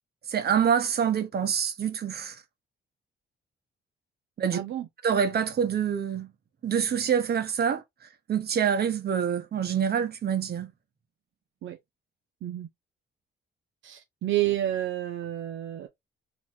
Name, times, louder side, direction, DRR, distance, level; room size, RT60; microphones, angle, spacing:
voice 1, 0.3-2.4 4.4-4.6 5.0-6.3 6.6-7.8 8.3-10.7, right 7 dB, 55° right, 1.2 m, -26 dB
voice 2, 4.5-4.9 11.6-11.8 12.4-12.7 13.8-15.9, right 13 dB, 75° right, 0.8 m, -30 dB
4.2 x 2.4 x 4.4 m
cardioid pair, 90°, 20 cm